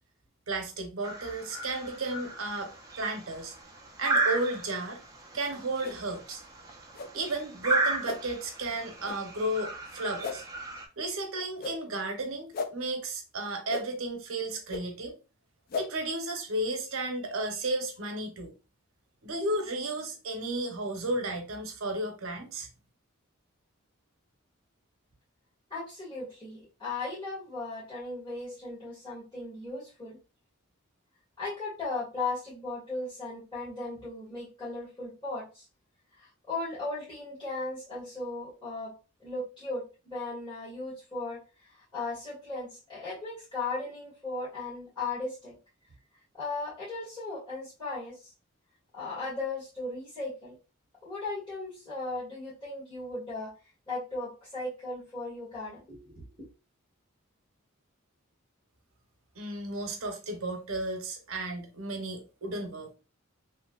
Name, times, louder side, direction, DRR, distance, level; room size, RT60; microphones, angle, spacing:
voice 1, 0.5-2.7 3.0-3.5 4.0-5.0 5.3-6.4 7.1-10.4 11.0-15.1 15.7-18.5 19.2-22.7 59.4-62.9, right 2 dB, 80° right, 0.8 m, -33 dB
sound 1, 1.0-10.9, right 3 dB, 15° right, 0.5 m, -34 dB
sound 2, 5.8-6.0 6.9-7.1 8.0-8.2 9.0-9.2 10.2-10.4 11.6-11.8 12.5-12.7 13.7-13.8 14.7-14.8 15.7-15.9, left 5 dB, 45° left, 0.3 m, -34 dB
voice 2, 25.7-30.2 31.4-35.6 36.1-45.5 46.3-48.3 48.9-50.5 51.0-53.5 53.9-56.5, left 3 dB, 20° left, 1.6 m, -37 dB
3.1 x 2.8 x 2.3 m
head